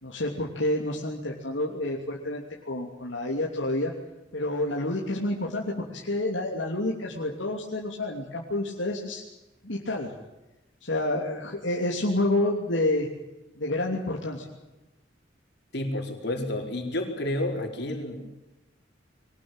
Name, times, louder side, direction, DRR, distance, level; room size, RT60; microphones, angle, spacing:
voice 1, 0.0-3.9 4.3-9.2 9.6-10.1 10.8-13.1 13.6-14.5, left 1 dB, 75° left, -1 dB, 3.1 m, -29 dB
voice 2, 15.7-18.2, left 1 dB, 60° left, 3 dB, 4.8 m, -30 dB
23.5 x 19.0 x 9.0 m, 0.98 s
head